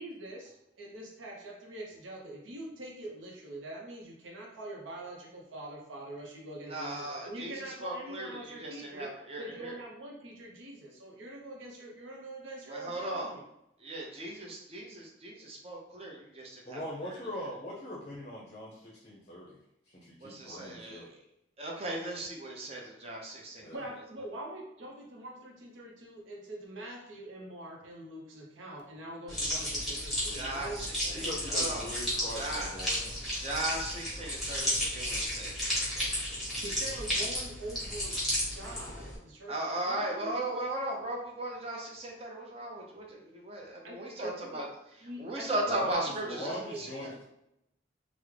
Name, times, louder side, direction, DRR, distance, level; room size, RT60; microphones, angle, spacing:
voice 1, 0.0-9.1 9.4-13.4 23.7-31.2 36.6-38.2 38.6-40.5 43.8-44.6 45.0-45.8 46.1-47.2, right 1 dB, 90° right, -1 dB, 0.6 m, -44 dB
voice 2, 6.6-9.8 12.7-13.3 13.8-17.2 20.2-21.2 21.6-23.7 29.8-29.9 30.3-31.9 32.3-32.7 33.4-35.7 36.0-36.1 39.5-44.7 45.2-46.9, right 1 dB, 30° right, -1 dB, 0.6 m, -37 dB
voice 3, 16.6-19.6 19.9-21.1 23.6-23.8 31.1-33.3 45.7-47.2, equal, 35° left, -4 dB, 0.5 m, -41 dB
sound 1, 29.3-39.2, equal, ahead, 1.1 m, -33 dB
3.5 x 2.0 x 3.2 m, 0.82 s
head